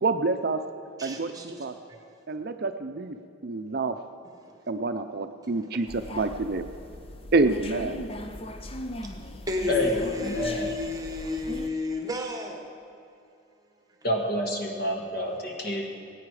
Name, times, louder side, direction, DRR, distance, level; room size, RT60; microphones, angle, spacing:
voice 1, 0.0-0.6 1.0-1.3 1.6-1.7 2.3-3.2 3.4-4.0 4.7-6.6 7.3-8.0, right 3 dB, 50° right, 8 dB, 0.5 m, -27 dB
voice 2, 1.0-2.1 4.2-4.5 8.1-8.2 9.0-12.7, left 2 dB, 20° right, 3 dB, 1.1 m, -33 dB
sound 1, 5.9-11.7, left 1 dB, 30° left, 0.5 m, -39 dB
voice 3, 9.7-10.7 14.0-15.8, left 1 dB, 50° left, 1 dB, 1.6 m, -28 dB
18.5 x 9.3 x 4.9 m, 2.5 s
head